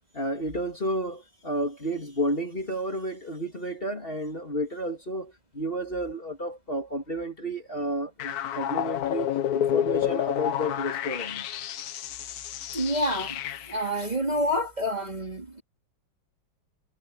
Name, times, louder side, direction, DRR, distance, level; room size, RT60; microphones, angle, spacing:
voice 1, 0.1-11.5, equal, 30° left, 3.0 m, -31 dB
sound 1, 8.2-13.9, left 10 dB, 65° left, 1.1 m, -30 dB
voice 2, 12.7-13.4 13.7-15.6, equal, 20° right, 2.8 m, -28 dB
omnidirectional pair, 2.1 m